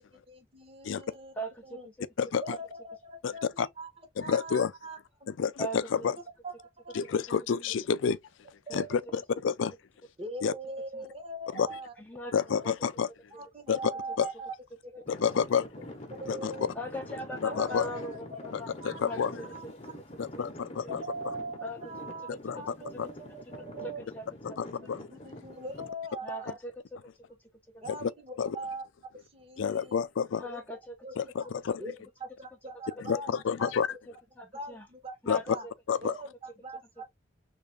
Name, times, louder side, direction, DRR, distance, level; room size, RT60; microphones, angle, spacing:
voice 1, 0.3-1.3 1.6-1.9 2.4-3.9 4.2-5.3 6.4-7.0 8.7-8.9 10.2-11.9 12.3-12.6 13.3-14.5 14.9-15.3 16.1-16.7 17.5-18.2 18.8-19.0 19.4-20.0 20.9-24.1 24.7-26.6 27.8-28.8 29.2-30.0 30.4-31.5 31.8-33.3 33.6-33.7 34.4-35.7 36.0-37.1, right 2 dB, 30° right, 1.0 m, -42 dB
voice 2, 1.4-1.8 5.6-5.8 8.7-8.8 9.1-9.2 12.0-12.6 16.7-18.7 19.0-19.3 21.6-21.8 23.8-24.9 26.2-26.7 30.4-30.9 34.4-34.9 35.2-35.7, right 1 dB, 5° left, 0.6 m, -39 dB
voice 3, 3.2-3.7 4.2-4.7 5.4-6.2 6.9-8.2 8.7-9.7 10.4-10.5 11.5-11.7 12.3-13.1 13.7-13.8 14.2-14.3 15.1-15.7 16.3-16.5 17.4-17.9 18.8-19.3 20.2-20.9 22.4-22.6 23.0-23.1 24.4-25.0 27.9-28.1 28.4-28.6 29.6-30.4 31.2-31.7 33.0-33.9 35.3-35.4 35.9-36.1, left 6 dB, 75° left, 0.4 m, -29 dB
Traffic noise roadway noise / Engine, 15.1-25.9, left 1 dB, 35° left, 0.8 m, -45 dB
3.5 x 2.5 x 3.3 m
head